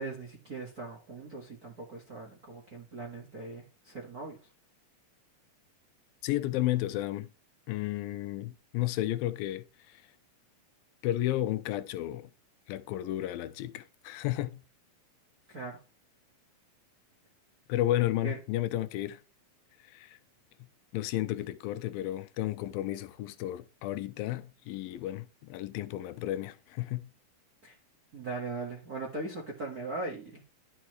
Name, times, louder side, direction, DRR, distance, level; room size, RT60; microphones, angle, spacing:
voice 1, 0.0-4.4 15.5-15.8 18.2-18.4 27.6-27.8 28.1-30.4, right 3 dB, 45° right, 1.1 m, -39 dB
voice 2, 6.2-7.3 7.7-10.0 11.0-12.3 12.7-14.6 17.7-19.2 19.8-20.2 20.9-27.1, left 14 dB, 85° left, 2.4 m, -32 dB
11.5 x 5.4 x 3.1 m
omnidirectional pair, 4.2 m